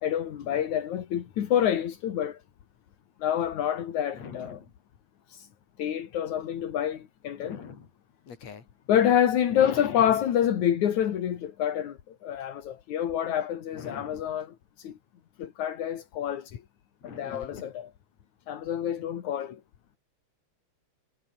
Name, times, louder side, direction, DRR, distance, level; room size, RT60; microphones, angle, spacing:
voice 1, 0.0-2.4 3.2-4.6 5.3-5.5 5.8-7.6 8.9-14.9 15.4-16.5 17.0-17.9 18.5-19.6, left 10 dB, 80° left, 3.2 m, -27 dB
voice 2, 4.1-4.7 7.4-7.9 8.3-8.6 9.6-10.1 13.8-14.2 17.0-17.7, left 6 dB, 65° left, 4.5 m, -41 dB
omnidirectional pair, 3.3 m